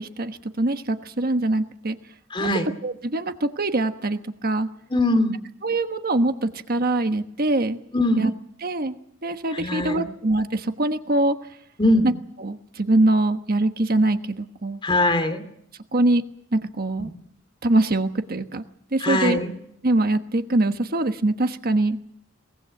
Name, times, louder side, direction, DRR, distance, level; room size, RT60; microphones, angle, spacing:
voice 1, 0.0-2.0 2.4-2.5 2.8-4.7 5.6-7.8 8.2-8.3 8.6-9.0 9.2-11.4 12.0-12.1 12.4-14.8 15.9-16.2 16.5-17.1 17.6-18.6 18.9-19.4 19.8-22.0, right 2 dB, 50° right, 8 dB, 1.2 m, -23 dB
voice 2, 2.3-2.7 4.9-5.4 7.9-8.2 9.5-10.1 11.8-12.1 14.8-15.4 17.0-17.1 19.0-19.5, left 1 dB, 25° left, 6 dB, 2.8 m, -21 dB
22.5 x 20.0 x 7.8 m, 0.73 s
head